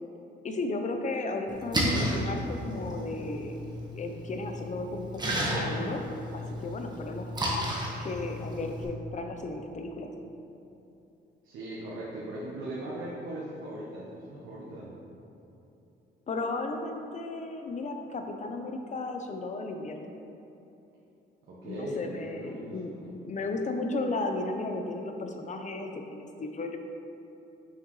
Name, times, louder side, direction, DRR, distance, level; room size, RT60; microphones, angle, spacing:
voice 1, 0.4-3.6 3.9-6.0 6.3-7.3 8.0-10.1 16.3-20.0 21.6-22.9 23.2-26.8, left 2 dB, 40° left, 5 dB, 0.7 m, -34 dB
Splash splatter, 1.5-8.8, equal, 20° right, 1.3 m, -33 dB
voice 2, 11.4-14.9 21.5-23.1, right 1 dB, 75° right, -7 dB, 1.2 m, -39 dB
6.5 x 5.8 x 3.2 m, 2.9 s
cardioid pair, 90°, 20 cm